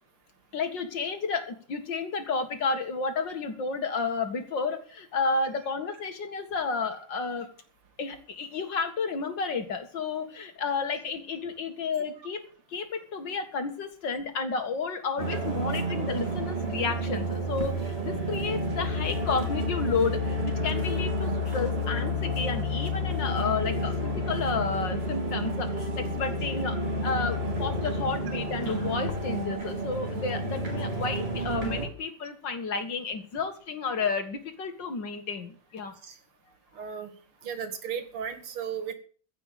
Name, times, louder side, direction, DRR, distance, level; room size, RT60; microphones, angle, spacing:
voice 1, 0.5-7.5 8.0-12.4 12.7-36.0, left 4 dB, 60° left, 7 dB, 2.4 m, -31 dB
sound 1, 15.2-31.9, equal, 25° right, 3.8 m, -30 dB
voice 2, 36.8-37.1 37.4-38.9, right 7 dB, 80° right, 10 dB, 2.7 m, -35 dB
15.5 x 5.8 x 9.2 m, 0.43 s
omnidirectional pair, 2.3 m